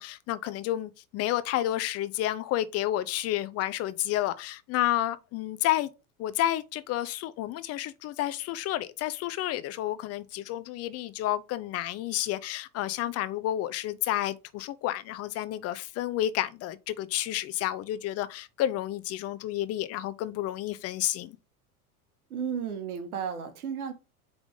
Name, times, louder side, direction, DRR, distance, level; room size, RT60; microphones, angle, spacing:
voice 1, 0.0-5.9 6.2-21.3, left 13 dB, 35° left, 0.5 m, -30 dB
voice 2, 22.3-23.9, right 7 dB, 80° right, 1.5 m, -33 dB
5.2 x 3.5 x 5.1 m
hypercardioid pair, 90°, 44 cm